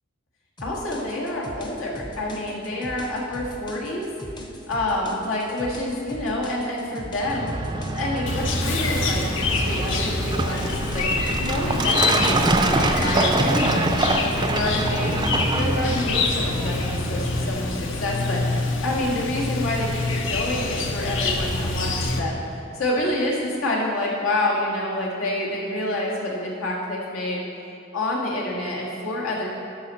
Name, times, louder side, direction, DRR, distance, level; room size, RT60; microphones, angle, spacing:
voice 1, 0.6-4.1 4.7-7.5 7.9-9.2 9.5-11.1 11.4-15.2 15.5-22.4 22.7-27.4 27.9-29.6, left 1 dB, 85° left, -3 dB, 1.8 m, -28 dB
sound 1, 0.6-11.5, equal, 20° left, 0.7 m, -39 dB
Truck, 7.2-17.5, right 2 dB, 20° right, 0.4 m, -25 dB
Chirp tweet, 8.3-22.2, left 3 dB, 65° left, 0.8 m, -26 dB
12.5 x 5.8 x 4.3 m, 2.7 s
head